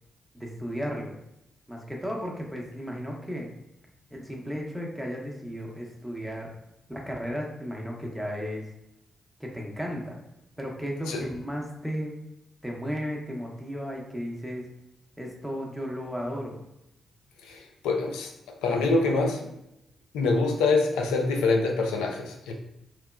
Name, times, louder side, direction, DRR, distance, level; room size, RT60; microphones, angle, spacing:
voice 1, 0.3-1.1 1.7-3.5 4.1-6.5 6.9-8.7 9.4-10.1 10.6-12.2 12.6-14.6 15.2-16.6, equal, ahead, -1 dB, 0.8 m, -34 dB
voice 2, 17.4-18.3 18.6-19.5 20.1-22.5, left 3 dB, 85° left, 3 dB, 0.4 m, -25 dB
2.9 x 2.0 x 2.3 m, 0.85 s
hypercardioid pair, 45°, 0 cm